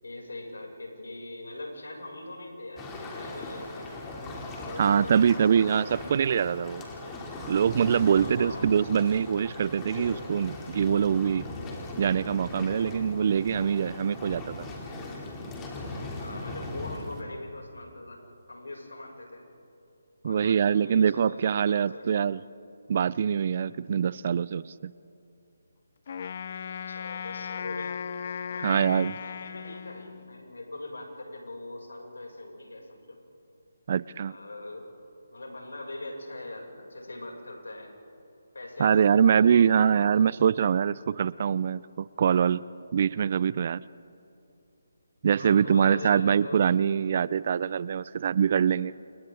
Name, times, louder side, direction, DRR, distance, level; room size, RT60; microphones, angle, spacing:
voice 1, 0.0-4.0 4.7-6.1 8.1-8.6 16.2-18.2 18.5-19.4 20.2-22.3 26.8-28.0 28.5-33.2 34.2-34.9 35.3-37.9 38.5-40.3 45.3-46.6, left 2 dB, 85° left, 0 dB, 6.8 m, -41 dB
sound 1, 2.8-17.2, left 2 dB, 15° left, 3.1 m, -39 dB
voice 2, 4.8-6.9 7.5-11.5 12.0-14.7 20.2-22.4 22.9-24.9 28.6-29.1 33.9-34.4 38.8-42.6 42.9-43.8 45.2-48.9, right 7 dB, 45° right, 20 dB, 0.4 m, -24 dB
Wind instrument woodwind instrument, 26.1-30.5, left 7 dB, 45° left, 0.5 m, -37 dB
29.5 x 29.0 x 3.9 m, 2.7 s
figure-of-eight pair, 160°, 0 cm